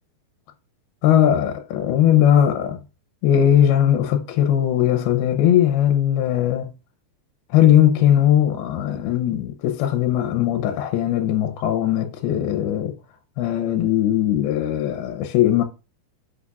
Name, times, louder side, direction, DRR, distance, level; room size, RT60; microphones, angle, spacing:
voice 1, 1.0-2.8 3.2-6.7 7.5-12.9 13.4-15.6, left 11 dB, 85° left, 2.7 m, -19 dB
11.5 x 6.3 x 2.4 m
omnidirectional pair, 4.5 m